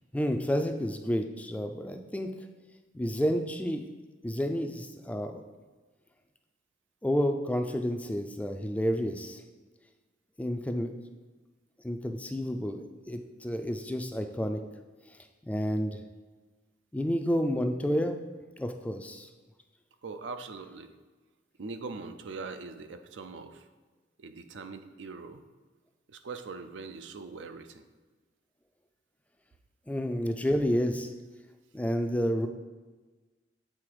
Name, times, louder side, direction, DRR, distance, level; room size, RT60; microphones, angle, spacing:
voice 1, 0.1-2.3 2.9-3.8 4.2-5.4 7.0-9.4 10.4-10.9 11.8-14.6 15.4-16.0 16.9-18.2 18.6-19.3 29.9-31.1 31.7-32.5, equal, 10° left, 6 dB, 0.3 m, -30 dB
voice 2, 20.0-20.9 21.6-23.7 24.2-25.4 26.1-27.8, right 4 dB, 80° right, 9 dB, 0.5 m, -41 dB
7.6 x 3.9 x 4.8 m, 1.3 s
head